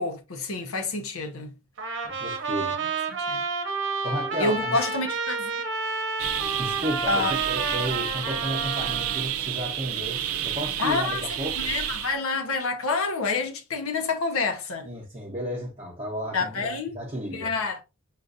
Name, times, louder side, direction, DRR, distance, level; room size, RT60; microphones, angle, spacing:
voice 1, 0.0-1.5 2.8-2.9 3.2-3.4 4.4-5.6 7.1-7.3 10.8-11.2 11.6-14.9 16.3-16.9 17.3-17.8, left 3 dB, 70° left, 0.8 m, -28 dB
Trumpet, 1.8-9.2, right 4 dB, 55° right, 0.8 m, -30 dB
voice 2, 2.0-2.8 4.0-4.8 6.6-10.2 10.4-11.7 14.8-17.5, equal, 25° right, 0.8 m, -33 dB
sound 1, 6.2-12.2, right 10 dB, 75° right, 0.5 m, -30 dB
5.7 x 2.5 x 2.6 m
head